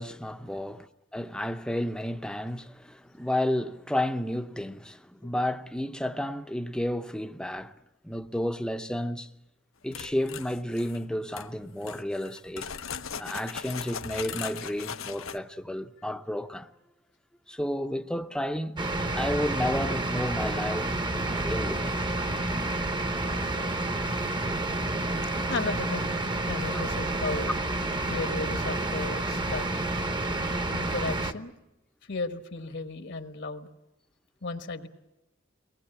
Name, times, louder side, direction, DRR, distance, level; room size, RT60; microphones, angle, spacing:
voice 1, 0.0-7.7 8.0-9.3 9.8-12.7 13.2-16.7 17.5-18.9 19.2-22.1, left 1 dB, 5° left, 0.7 m, -32 dB
sound 1, 9.9-11.0 11.3-11.5 11.8-15.4, left 7 dB, 85° left, 0.9 m, -38 dB
sound 2, 18.8-31.3, right 2 dB, 25° right, 1.0 m, -29 dB
voice 2, 25.5-26.1 26.5-27.5 28.1-29.8 30.7-31.5 32.1-33.7 34.4-34.9, left 3 dB, 60° left, 1.3 m, -34 dB
23.5 x 19.0 x 8.8 m
head